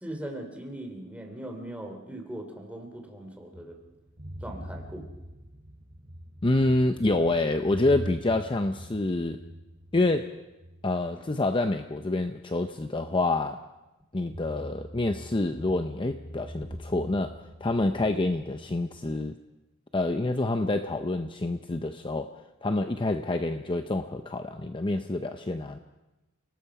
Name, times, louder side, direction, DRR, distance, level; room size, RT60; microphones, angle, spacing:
voice 1, 0.0-3.8 4.4-5.1, right 1 dB, 5° right, 3 dB, 2.9 m, -39 dB
sound 1, 3.5-12.1 12.5-12.6 14.3-18.9, equal, 35° right, 3.7 m, -43 dB
voice 2, 6.4-9.4 9.9-10.3 10.8-13.6 14.1-19.4 19.9-22.3 22.6-25.8, left 2 dB, 25° left, 7 dB, 0.7 m, -27 dB
29.5 x 19.0 x 4.9 m, 1.0 s
head